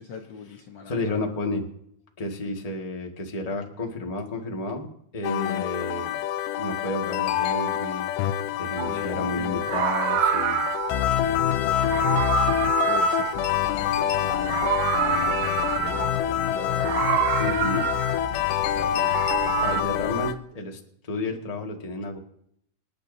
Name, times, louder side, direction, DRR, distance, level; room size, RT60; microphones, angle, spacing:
voice 1, 0.0-1.2 8.8-9.7 11.5-12.5 12.8-17.4 18.3-19.9, left 5 dB, 65° left, 3 dB, 1.1 m, -40 dB
voice 2, 0.9-1.7 2.2-6.1 6.6-8.1 8.6-10.6 17.4-17.9 19.5-22.2, left 2 dB, 20° left, 1 dB, 1.0 m, -31 dB
sound 1, 5.2-20.3, left 11 dB, 85° left, 2.3 m, -26 dB
Meow, 8.8-9.0 9.6-11.0 11.7-14.0 14.3-16.2 16.7-18.3 18.9-19.8, right 10 dB, 75° right, 1.5 m, -27 dB
26.5 x 10.5 x 2.7 m, 0.70 s
omnidirectional pair, 3.7 m